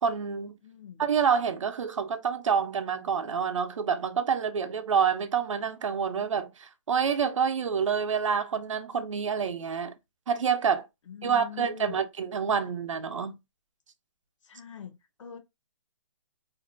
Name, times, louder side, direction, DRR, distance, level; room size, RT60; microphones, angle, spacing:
voice 1, 0.0-0.6 1.0-9.9 10.3-10.9 11.2-13.4, right 6 dB, 85° right, 0.6 m, -27 dB
voice 2, 0.6-1.0 11.1-12.0 14.4-15.4, left 8 dB, 85° left, 0.6 m, -44 dB
2.6 x 2.1 x 2.6 m
hypercardioid pair, 175°, 16 cm